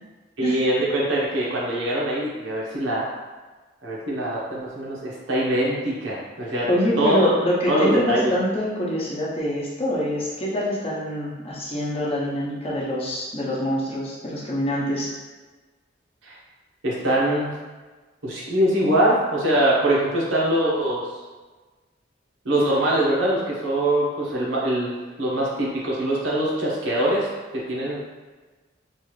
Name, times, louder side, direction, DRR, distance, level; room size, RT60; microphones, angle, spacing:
voice 1, 0.4-3.2 3.8-6.7 7.0-7.3 7.7-8.3 16.2-16.4 16.8-17.6 18.2-21.0 22.4-28.0, right 1 dB, 80° right, -5 dB, 0.9 m, -23 dB
voice 2, 6.7-15.1, equal, 30° left, -5 dB, 0.7 m, -25 dB
3.3 x 2.5 x 3.1 m, 1.3 s
head